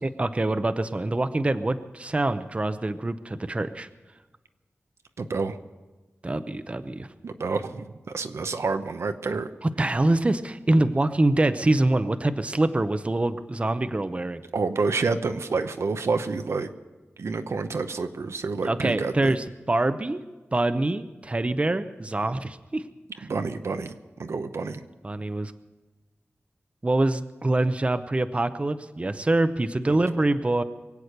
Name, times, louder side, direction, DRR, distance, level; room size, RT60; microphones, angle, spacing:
voice 1, 0.0-3.9 6.2-7.1 9.8-14.4 18.6-20.2 20.5-22.8 23.2-23.3 25.0-25.5 26.8-30.6, right 2 dB, 25° right, 11 dB, 0.6 m, -25 dB
voice 2, 5.2-5.6 7.2-9.5 14.5-16.7 17.2-19.3 23.2-23.9 24.2-24.8 29.9-30.0, right 4 dB, 80° right, 8 dB, 0.8 m, -28 dB
23.0 x 8.3 x 6.6 m, 1.2 s
wide cardioid pair, 90°, 5 cm